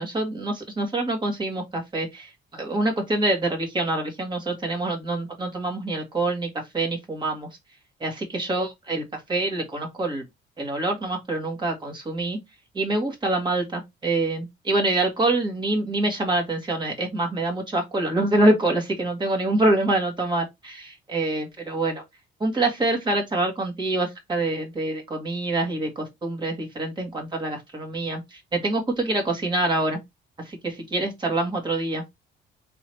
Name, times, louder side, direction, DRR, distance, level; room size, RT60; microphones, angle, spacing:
voice 1, 0.0-7.5 8.0-10.2 10.6-12.4 12.7-22.0 22.4-30.0 30.4-32.0, right 2 dB, 20° right, 1.9 m, -26 dB
3.9 x 3.1 x 4.5 m
cardioid pair, 145°, 20 cm